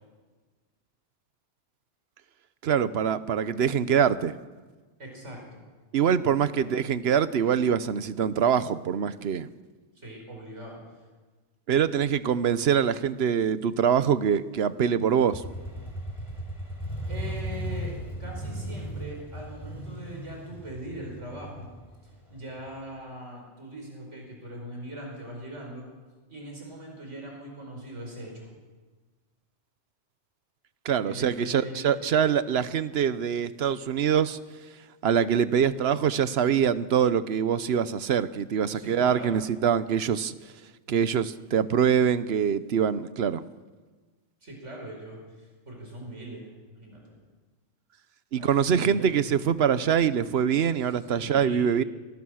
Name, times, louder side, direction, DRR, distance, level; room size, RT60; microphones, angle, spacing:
voice 1, 2.6-4.3 5.9-9.5 11.7-15.4 30.8-34.4 35.0-40.3 40.9-43.4 48.3-51.8, right 8 dB, 60° right, 14 dB, 1.0 m, -24 dB
voice 2, 5.0-5.6 6.5-6.7 9.9-10.8 17.1-17.9 18.2-21.7 22.3-25.9 26.3-28.5 31.0-32.1 38.7-39.5 44.4-47.0 48.3-49.1 50.7-50.9 51.2-51.7, right 1 dB, 80° right, 0 dB, 5.4 m, -41 dB
Motorcycle, 15.3-23.0, right 1 dB, 25° left, 6.9 m, -37 dB
26.5 x 18.5 x 6.4 m, 1.4 s
omnidirectional pair, 1.2 m